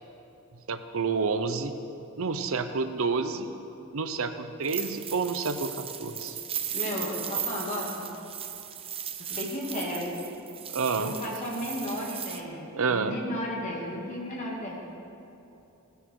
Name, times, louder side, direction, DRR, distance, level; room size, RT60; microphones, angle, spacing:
voice 1, 0.7-1.7 2.2-3.5 3.9-6.4 10.7-11.1 12.7-13.2, right 4 dB, 70° right, 9 dB, 0.7 m, -29 dB
sound 1, 4.6-12.4, right 9 dB, 25° right, 0.7 m, -37 dB
voice 2, 6.7-8.1 9.2-10.2 11.0-14.8, equal, 35° left, -2 dB, 2.4 m, -34 dB
17.5 x 10.0 x 4.7 m, 2.9 s
head